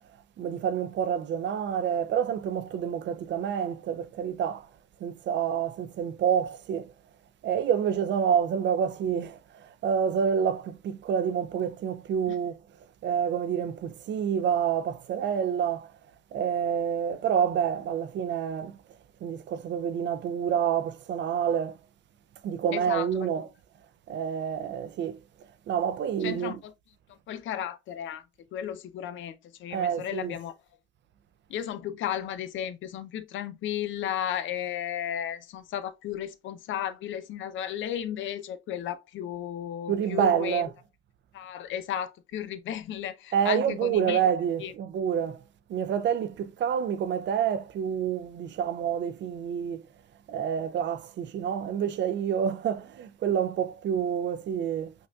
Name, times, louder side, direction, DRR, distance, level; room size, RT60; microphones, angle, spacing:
voice 1, 0.4-4.7 5.0-6.9 7.4-12.6 13.0-15.9 16.3-18.8 19.2-21.8 22.4-23.5 24.1-25.2 25.7-26.6 29.7-30.3 39.9-40.7 43.3-45.4 45.7-49.8 50.3-54.9, right 8 dB, 65° right, 0.5 m, -28 dB
voice 2, 22.7-23.3 26.2-26.7 27.1-28.3 28.5-30.5 31.5-40.6 41.3-44.2 44.6-44.7, left 10 dB, 75° left, 0.6 m, -34 dB
5.2 x 2.5 x 2.3 m
cardioid pair, 90°, 20 cm